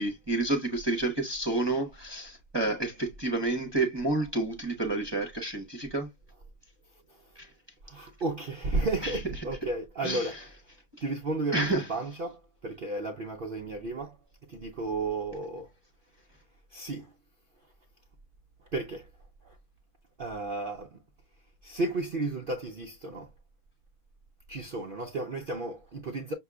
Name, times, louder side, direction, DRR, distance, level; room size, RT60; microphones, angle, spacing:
voice 1, 0.0-6.1 7.4-7.5 9.0-9.1 10.0-10.3 11.5-11.9, right 2 dB, 30° right, 0.5 m, -29 dB
voice 2, 7.8-10.6 11.0-14.2 14.4-15.7 16.7-17.1 18.7-19.1 19.4-19.6 20.2-21.0 21.6-23.3 24.5-26.3, right 2 dB, 80° right, 0.4 m, -33 dB
6.1 x 2.8 x 2.3 m
omnidirectional pair, 1.8 m